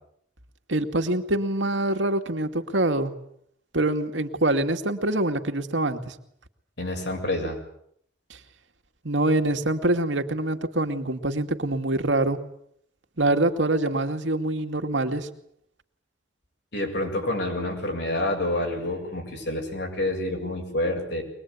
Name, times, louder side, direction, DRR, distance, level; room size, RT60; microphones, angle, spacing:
voice 1, 0.7-3.1 3.7-6.2 8.3-8.4 9.0-12.4 13.2-15.3, right 2 dB, 80° right, 6 dB, 2.3 m, -25 dB
voice 2, 6.8-7.6 16.7-21.2, left 1 dB, 60° left, 2 dB, 7.6 m, -28 dB
23.5 x 21.0 x 9.7 m, 0.70 s
head